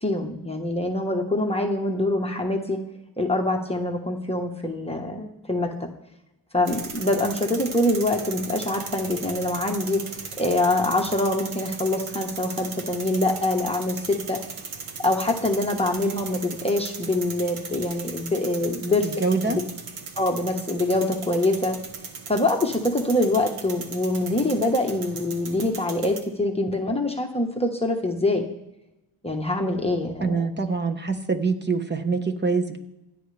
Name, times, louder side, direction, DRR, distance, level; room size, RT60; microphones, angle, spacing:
voice 1, 0.0-2.8 3.2-5.9 6.5-10.0 10.4-14.4 15.0-19.1 19.5-19.6 20.2-21.8 22.3-28.4 29.2-30.5, left 1 dB, 10° left, 1 dB, 1.3 m, -24 dB
sound 1, 6.7-26.2, right 5 dB, 80° right, 1.8 m, -37 dB
voice 2, 19.2-19.6 30.2-32.8, right 4 dB, 20° right, 6 dB, 1.3 m, -24 dB
27.5 x 9.6 x 3.4 m, 0.95 s
wide cardioid pair, 140°, 48 cm